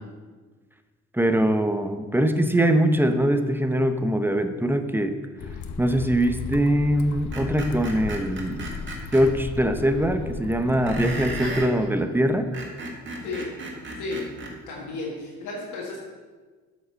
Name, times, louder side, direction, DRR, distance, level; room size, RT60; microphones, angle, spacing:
voice 1, 1.1-5.1 5.8-8.6 9.1-12.6, right 1 dB, 5° right, 8 dB, 0.7 m, -22 dB
sound 1, 5.4-11.5, left 5 dB, 70° left, 0.8 m, -36 dB
Screech, 7.3-9.2 10.9-11.7 12.4-14.5, right 2 dB, 40° right, 1.9 m, -35 dB
voice 2, 14.7-16.0, left 3 dB, 85° left, -3 dB, 1.6 m, -33 dB
7.8 x 5.2 x 6.3 m, 1.4 s
cardioid pair, 90°, 30 cm